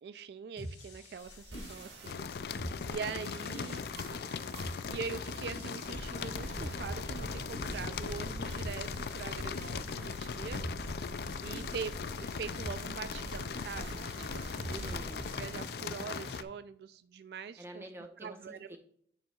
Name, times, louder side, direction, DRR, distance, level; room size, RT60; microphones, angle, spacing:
voice 1, 0.0-3.8 4.1-4.2 4.9-10.9 11.4-14.9 15.3-17.8 18.2-18.8, right 6 dB, 65° right, 12 dB, 0.3 m, -43 dB
sound 1, 0.6-16.4, equal, 90° left, 1.8 m, -46 dB
sound 2, 1.2-15.5, right 1 dB, 85° right, 1.6 m, -45 dB
sound 3, 2.0-16.4, left 6 dB, 60° left, 0.4 m, -39 dB
voice 2, 3.0-4.3 14.7-15.3 17.6-18.8, right 1 dB, 15° right, 4 dB, 0.9 m, -50 dB
9.6 x 7.6 x 2.3 m, 0.67 s
head